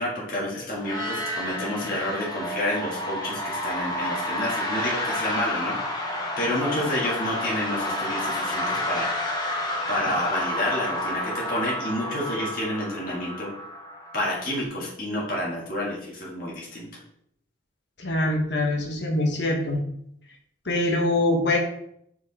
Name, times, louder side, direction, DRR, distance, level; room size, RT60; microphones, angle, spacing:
voice 1, 0.0-6.0 6.4-9.4 9.9-13.7 14.1-16.9, left 1 dB, 45° left, -5 dB, 1.7 m, -29 dB
sound 1, 0.8-14.5, left 1 dB, 20° left, 1.0 m, -30 dB
voice 2, 18.0-19.8 20.6-21.6, left 1 dB, 65° left, 1 dB, 1.3 m, -24 dB
4.8 x 4.8 x 4.2 m, 0.71 s
head